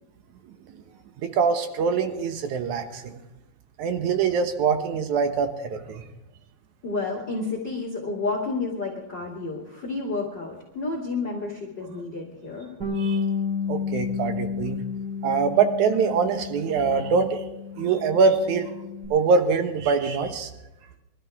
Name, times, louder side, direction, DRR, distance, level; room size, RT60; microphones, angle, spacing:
voice 1, 1.2-3.2 3.8-6.0 13.0-13.2 13.7-14.8 15.2-17.4 17.8-18.8 19.1-20.5, right 5 dB, 65° right, 7 dB, 2.0 m, -23 dB
voice 2, 6.8-12.7, left 3 dB, 30° left, -1 dB, 2.5 m, -30 dB
Bass guitar, 12.8-19.1, left 5 dB, 25° right, 5.1 m, -31 dB
24.0 x 13.5 x 3.6 m, 0.94 s
omnidirectional pair, 4.6 m